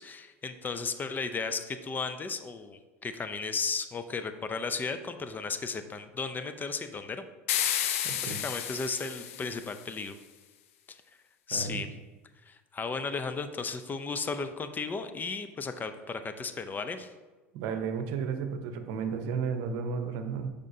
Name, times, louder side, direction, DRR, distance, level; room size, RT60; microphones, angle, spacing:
voice 1, 0.0-7.3 8.2-10.2 10.9-11.0 11.5-11.9 12.4-17.1, left 4 dB, 25° left, 9 dB, 0.5 m, -35 dB
sound 1, 7.5-9.9, left 10 dB, 70° left, 0.6 m, -32 dB
voice 2, 8.0-8.4 11.5-11.9 17.5-20.5, right 6 dB, 60° right, 7 dB, 0.8 m, -33 dB
8.4 x 5.0 x 2.7 m, 1.2 s
hypercardioid pair, 85°, 8 cm